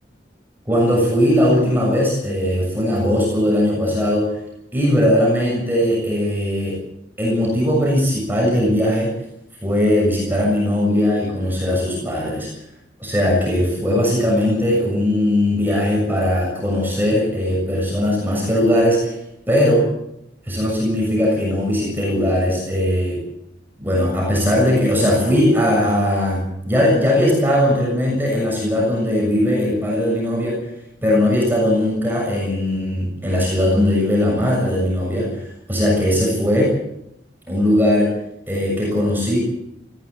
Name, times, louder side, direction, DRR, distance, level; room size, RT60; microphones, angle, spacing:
voice 1, 0.7-4.4 4.7-6.8 7.2-9.1 9.6-12.5 13.0-19.1 19.5-19.9 20.4-23.2 23.8-30.6 31.0-36.8 37.5-38.1 38.5-39.4, left 1 dB, 10° right, -2 dB, 7.0 m, -19 dB
20.5 x 15.0 x 8.4 m, 0.80 s
head